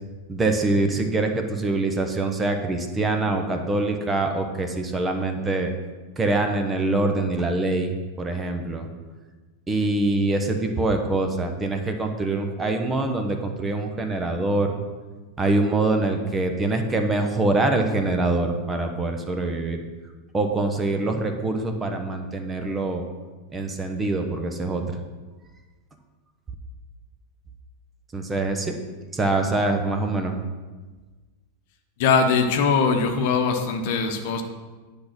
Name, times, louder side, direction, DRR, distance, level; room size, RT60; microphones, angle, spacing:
voice 1, 0.3-5.7 6.2-8.9 9.7-14.8 15.4-19.8 20.3-23.0 23.5-25.0 28.1-28.7 29.1-30.3, right 2 dB, 15° right, 5 dB, 1.1 m, -24 dB
voice 2, 32.0-34.4, left 5 dB, 50° left, 5 dB, 1.1 m, -21 dB
10.0 x 5.3 x 6.1 m, 1.3 s
figure-of-eight pair, 90°, 0 cm